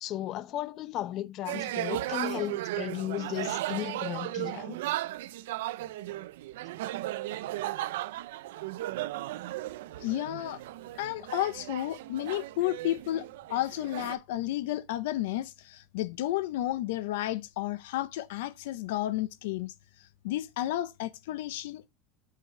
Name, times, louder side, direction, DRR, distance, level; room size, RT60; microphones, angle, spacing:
voice 1, 0.0-4.8, left 12 dB, 45° left, 0.7 m, -35 dB
sound 1, 1.4-14.1, right 15 dB, 85° right, 0.4 m, -36 dB
voice 2, 10.0-10.6 10.9-21.9, left 14 dB, 80° left, 0.5 m, -32 dB
7.6 x 4.8 x 4.4 m
supercardioid pair, 145°, 0 cm